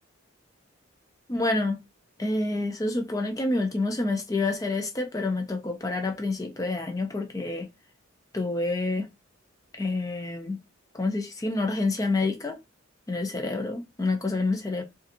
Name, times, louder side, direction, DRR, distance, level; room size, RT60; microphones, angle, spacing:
voice 1, 1.3-1.8 2.2-7.7 8.3-9.1 9.8-10.6 10.9-12.6 13.1-14.8, left 2 dB, 15° left, 0.3 m, -28 dB
2.7 x 2.4 x 2.5 m
head